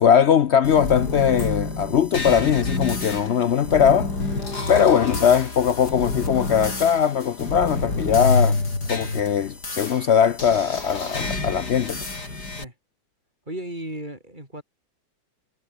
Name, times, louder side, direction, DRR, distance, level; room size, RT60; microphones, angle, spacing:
voice 1, 0.0-4.2 4.7-8.6 8.9-12.1, left 8 dB, 85° left, 0.5 m, -20 dB
sound 1, 0.6-12.6, left 3 dB, 55° left, 5.6 m, -28 dB
voice 2, 13.5-14.6, right 1 dB, 20° right, 7.4 m, -35 dB
omnidirectional pair, 2.1 m